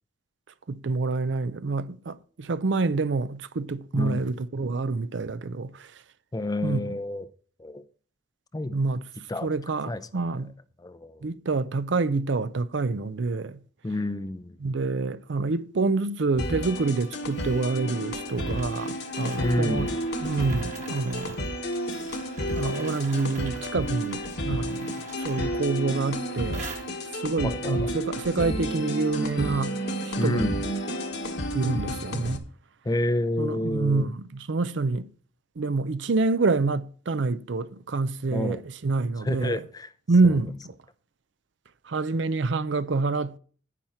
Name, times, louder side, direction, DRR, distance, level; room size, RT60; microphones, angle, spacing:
voice 1, 0.7-5.9 6.6-6.8 8.7-9.0 9.4-10.5 11.2-13.6 14.6-19.9 20.2-21.4 22.5-24.9 25.2-26.7 27.2-29.7 30.0-30.5 31.5-32.5 33.4-35.1 35.6-39.6 40.1-40.7 41.9-43.4, right 3 dB, 70° right, 0.5 m, -27 dB
voice 2, 3.9-4.3 6.3-7.3 7.6-7.8 8.5-8.7 9.3-9.5 9.8-10.0 10.8-11.3 13.8-14.6 19.4-20.0 27.4-27.9 30.2-30.6 32.8-34.1 38.3-38.6 39.2-39.9 40.2-40.4, left 1 dB, 20° left, 0.5 m, -29 dB
sound 1, 16.4-32.4, equal, 60° left, 1.4 m, -31 dB
sound 2, 16.4-27.4, right 4 dB, 40° right, 1.5 m, -46 dB
10.0 x 9.0 x 4.4 m
head